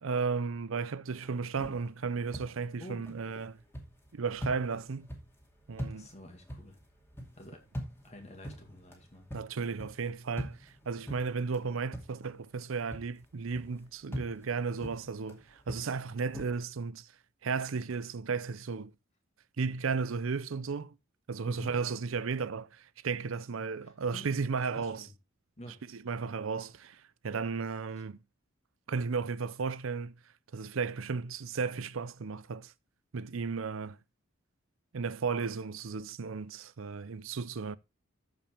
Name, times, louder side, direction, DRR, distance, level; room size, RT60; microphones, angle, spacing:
voice 1, 0.0-3.6 4.1-5.1 5.7-6.1 9.3-17.1 17.4-18.9 19.6-20.9 21.3-25.0 26.1-28.2 28.9-30.1 30.5-32.7 33.1-34.0 34.9-37.8, right 5 dB, 70° right, 0.6 m, -34 dB
sound 1, 1.2-12.6 12.9-16.5, equal, 10° left, 2.5 m, -45 dB
voice 2, 2.8-3.1 5.9-6.8 7.3-7.7 8.0-9.3 21.5-21.7 23.8-25.1 25.6-25.8, equal, 35° left, 2.1 m, -49 dB
14.0 x 5.4 x 3.3 m
head